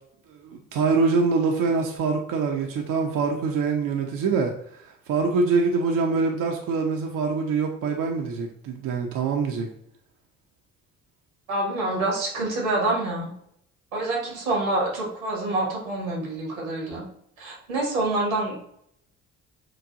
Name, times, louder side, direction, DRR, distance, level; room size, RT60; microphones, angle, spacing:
voice 1, 0.3-9.7, right 4 dB, 50° right, 1 dB, 0.8 m, -24 dB
voice 2, 11.5-13.3 13.9-17.0 17.4-18.7, right 2 dB, 85° right, -3 dB, 1.7 m, -27 dB
7.5 x 2.6 x 2.6 m, 0.72 s
figure-of-eight pair, 45°, 40 cm